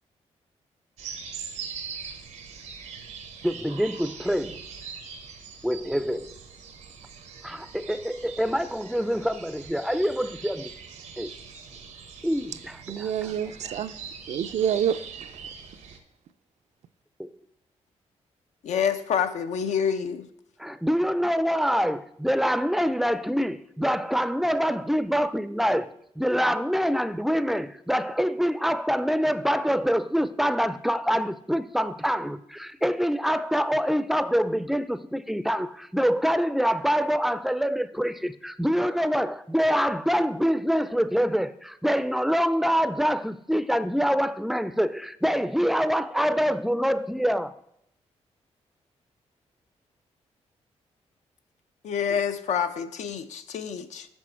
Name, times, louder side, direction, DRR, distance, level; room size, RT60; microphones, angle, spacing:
sound 1, 1.0-16.0, right 6 dB, 90° right, 0.8 m, -42 dB
voice 1, 3.4-4.6 5.6-6.4 7.4-10.7 11.2-11.3 12.2-13.3 17.2-17.4 20.6-25.9 26.2-47.5, equal, ahead, 0.4 m, -25 dB
voice 2, 12.9-13.9 14.3-15.3, right 9 dB, 70° right, 0.4 m, -27 dB
voice 3, 18.6-20.3 51.8-54.1, left 7 dB, 80° left, 0.5 m, -27 dB
6.2 x 6.1 x 4.4 m
cardioid pair, 75°, 12 cm